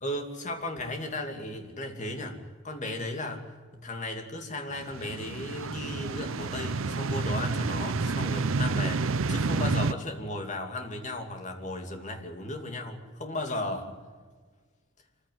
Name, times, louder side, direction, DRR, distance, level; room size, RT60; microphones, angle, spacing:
voice 1, 0.0-2.4 2.6-3.5 3.8-14.0, left 1 dB, 35° left, 4 dB, 2.7 m, -35 dB
sound 1, 4.8-9.9, right 3 dB, 75° right, 0.7 m, -29 dB
25.0 x 15.0 x 9.5 m, 1.5 s
head